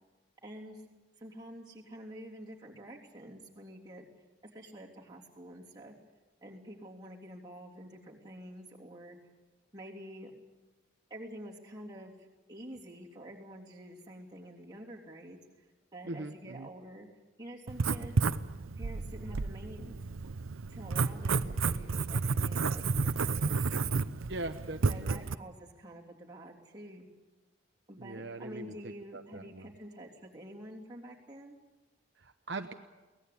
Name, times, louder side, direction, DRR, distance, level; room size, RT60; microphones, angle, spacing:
voice 1, 0.4-0.8 1.2-4.0 4.4-5.9 6.4-9.2 9.7-10.3 11.1-17.1 17.4-18.2 18.8-19.9 20.7-23.7 24.9-27.1 27.9-31.6, equal, 20° right, -3 dB, 3.2 m, -48 dB
voice 2, 16.0-16.7 24.3-25.2 28.0-29.7 32.2-32.7, right 2 dB, 60° right, 6 dB, 0.9 m, -41 dB
Writing, 17.7-25.3, right 4 dB, 90° right, 0.7 m, -31 dB
23.5 x 18.5 x 8.5 m, 1.2 s
head